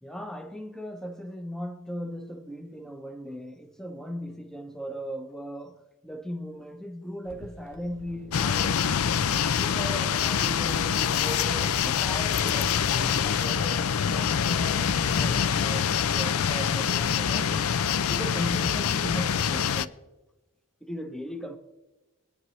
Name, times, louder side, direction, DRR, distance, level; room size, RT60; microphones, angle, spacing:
voice 1, 0.0-9.0 9.5-13.9 14.1-17.8 18.1-19.9 20.8-21.6, equal, ahead, 0.7 m, -38 dB
sound 1, 7.2-15.2, right 3 dB, 70° right, 0.8 m, -48 dB
sound 2, 8.3-19.9, left 7 dB, 75° left, 0.5 m, -25 dB
22.0 x 9.7 x 3.2 m
head